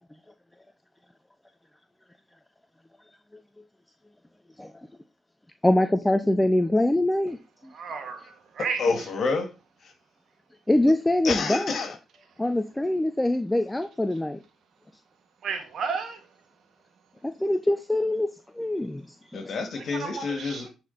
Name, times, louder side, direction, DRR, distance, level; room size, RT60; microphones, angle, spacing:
voice 1, 5.6-7.4 7.6-7.7 10.7-11.7 12.4-14.4 17.4-18.3 18.6-19.0 19.3-19.4, left 1 dB, 15° left, 0.8 m, -23 dB
voice 2, 7.7-8.2 8.6-8.8 15.4-16.2 19.9-20.7, right 5 dB, 65° right, 1.9 m, -32 dB
voice 3, 8.6-9.5 9.8-9.9 11.2-12.0 19.3-20.7, left 4 dB, 60° left, 2.2 m, -28 dB
9.7 x 4.4 x 4.1 m
hypercardioid pair, 45°, 0 cm